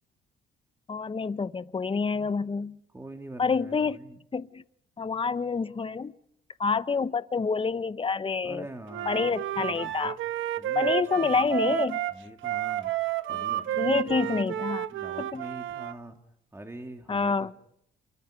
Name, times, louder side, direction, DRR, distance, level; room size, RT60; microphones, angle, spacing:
voice 1, 0.9-2.8 3.4-4.0 4.3-4.6 5.0-6.1 6.6-8.6 9.1-10.2 10.7-12.0 13.8-14.9 15.2-15.4 17.1-17.5, left 5 dB, 25° left, 0.9 m, -27 dB
voice 2, 2.9-4.2 8.4-10.2 10.6-11.6 12.1-14.5 14.9-16.2 16.5-17.5, right 2 dB, 15° right, 2.9 m, -44 dB
Wind instrument woodwind instrument, 8.9-15.9, right 13 dB, 80° right, 1.2 m, -31 dB
28.5 x 22.5 x 5.2 m
cardioid pair, 90°, 20 cm